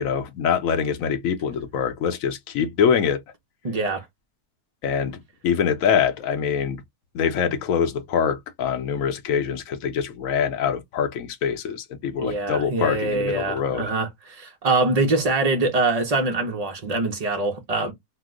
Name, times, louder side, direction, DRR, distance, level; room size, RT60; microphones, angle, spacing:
voice 1, 0.0-3.2 4.8-5.2 5.4-6.8 7.1-13.9, left 7 dB, 70° left, 0.9 m, -24 dB
voice 2, 3.6-4.0 12.2-17.9, right 3 dB, 60° right, 0.4 m, -24 dB
2.8 x 2.0 x 3.5 m
omnidirectional pair, 1.6 m